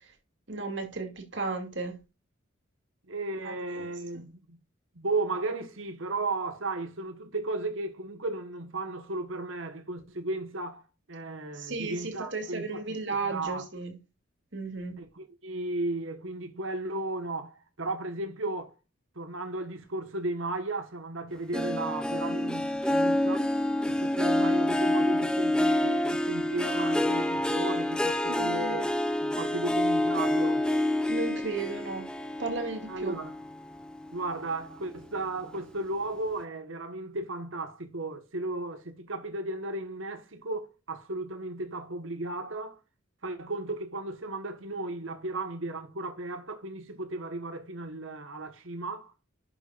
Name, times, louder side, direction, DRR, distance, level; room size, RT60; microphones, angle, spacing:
voice 1, 0.5-2.0 3.4-3.9 11.5-14.0 14.5-15.0 28.3-28.9 31.1-32.0 32.4-33.1, right 3 dB, 60° right, 2.5 m, -34 dB
voice 2, 3.1-4.6 4.9-12.8 13.2-13.7 15.0-18.7 19.1-23.5 23.9-28.8 29.2-30.6 32.9-33.4 34.1-42.8 43.2-49.1, right 2 dB, 80° right, 1.5 m, -35 dB
Harp, 21.5-34.3 34.7-35.1 35.6-35.7, left 1 dB, 5° left, 0.7 m, -28 dB
11.0 x 6.9 x 2.5 m
head